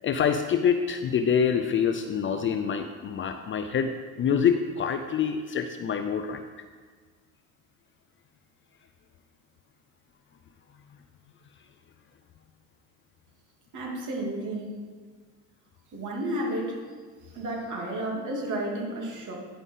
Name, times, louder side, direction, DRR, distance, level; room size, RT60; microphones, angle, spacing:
voice 1, 0.0-6.4, left 7 dB, 30° left, 8 dB, 0.5 m, -26 dB
voice 2, 13.7-14.8 15.9-16.8 17.2-19.4, right 1 dB, 45° right, -1 dB, 2.8 m, -32 dB
9.9 x 5.4 x 5.5 m, 1.5 s
supercardioid pair, 105°, 41 cm